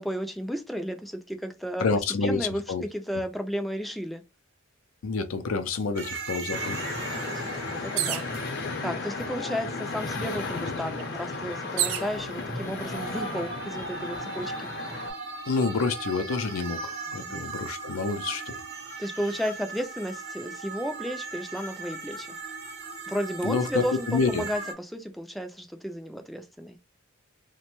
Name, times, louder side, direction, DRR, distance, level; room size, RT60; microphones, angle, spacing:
voice 1, 0.0-1.9 2.2-2.6 2.9-4.2 7.0-8.3 8.8-14.7 17.2-17.5 19.0-22.4 23.1-26.8, equal, ahead, 0.3 m, -33 dB
voice 2, 1.8-2.8 5.0-6.8 15.5-18.6 23.4-24.5, left 4 dB, 85° left, 0.4 m, -28 dB
sound 1, 6.0-9.6 12.0-24.7, right 4 dB, 55° right, 0.7 m, -38 dB
sound 2, 6.5-15.1, left 3 dB, 55° left, 0.7 m, -34 dB
sound 3, 8.0-8.4 9.3-9.4 9.7-12.1 12.9-13.4, right 11 dB, 80° right, 0.4 m, -31 dB
3.0 x 2.1 x 2.9 m
head